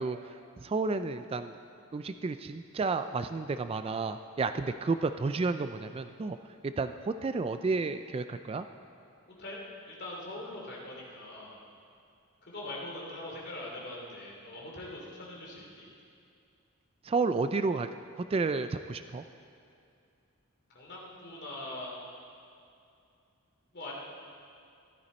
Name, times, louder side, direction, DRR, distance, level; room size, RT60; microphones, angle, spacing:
voice 1, 0.0-1.5 1.9-6.4 6.6-8.7 17.0-17.9 18.2-19.2, right 4 dB, 25° right, 10 dB, 0.3 m, -31 dB
voice 2, 9.9-11.6 12.5-15.9 20.7-22.0 23.7-24.0, left 1 dB, 50° left, -3 dB, 2.9 m, -42 dB
14.5 x 13.0 x 4.3 m, 2.5 s
head